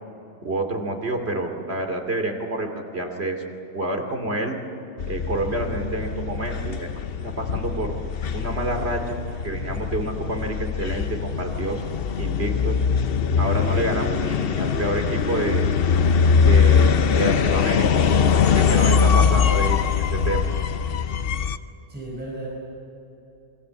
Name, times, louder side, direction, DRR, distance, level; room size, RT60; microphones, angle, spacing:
voice 1, 0.4-3.4 3.7-4.6 5.1-6.9 7.2-7.9 8.3-9.2 9.4-11.8 12.2-12.8 13.4-15.7 16.4-18.0 18.3-20.4, right 1 dB, 65° right, 3 dB, 3.1 m, -28 dB
sound 1, 5.0-21.6, left 6 dB, 60° left, 0.9 m, -22 dB
voice 2, 18.7-19.6 21.9-22.5, right 2 dB, 10° right, -3 dB, 4.6 m, -36 dB
27.5 x 22.5 x 7.8 m, 3.0 s
omnidirectional pair, 1.2 m